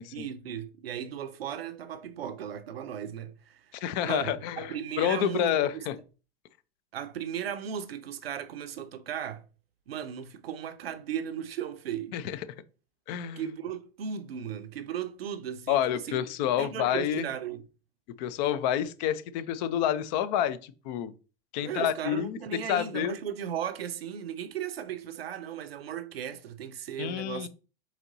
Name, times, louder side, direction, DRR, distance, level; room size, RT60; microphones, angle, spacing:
voice 1, 0.1-3.7 4.0-5.9 6.9-9.5 9.9-12.2 13.4-16.2 16.6-17.6 21.6-27.5, right 9 dB, 80° right, 0.7 m, -36 dB
voice 2, 3.8-6.0 12.1-12.4 13.1-13.4 15.7-17.3 18.2-21.1 21.5-23.2 27.0-27.5, left 10 dB, 45° left, 0.6 m, -29 dB
4.1 x 3.0 x 3.9 m
hypercardioid pair, 105°, 29 cm